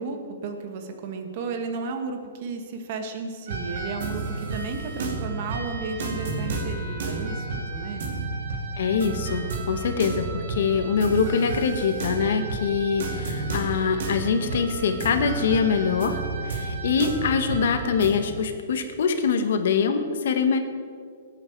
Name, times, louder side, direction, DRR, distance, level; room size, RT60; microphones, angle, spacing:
voice 1, 0.0-8.1 16.5-17.0, right 4 dB, 45° right, 5 dB, 1.7 m, -34 dB
sound 1, 3.5-18.1, right 3 dB, 60° right, 2.4 m, -31 dB
voice 2, 8.8-20.6, left 6 dB, 70° left, 7 dB, 1.5 m, -24 dB
18.5 x 8.7 x 4.7 m, 2.1 s
hypercardioid pair, 160°, 0 cm